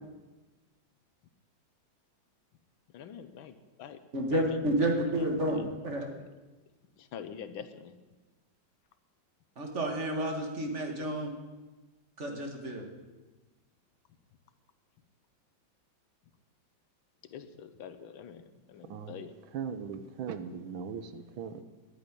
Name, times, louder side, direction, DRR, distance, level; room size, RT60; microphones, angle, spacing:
voice 1, 2.9-4.0 4.3-4.6 7.0-7.9 17.3-19.3, left 8 dB, 85° left, 11 dB, 1.7 m, -45 dB
voice 2, 4.1-6.1 9.6-11.3 12.2-12.8, right 1 dB, 35° right, 3 dB, 2.0 m, -30 dB
voice 3, 18.9-21.6, right 7 dB, 85° right, 11 dB, 1.7 m, -39 dB
10.5 x 9.5 x 9.9 m, 1.2 s
omnidirectional pair, 2.1 m